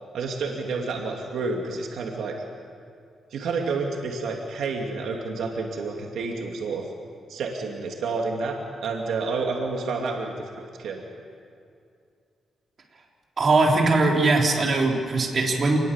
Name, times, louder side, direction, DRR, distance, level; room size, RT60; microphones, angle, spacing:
voice 1, 0.1-2.4 3.3-6.9 7.3-11.0, right 4 dB, 80° right, 1 dB, 2.7 m, -29 dB
voice 2, 13.4-15.8, right 3 dB, 40° right, -1 dB, 3.8 m, -20 dB
28.0 x 20.5 x 7.4 m, 2.4 s
wide cardioid pair, 135°, 0 cm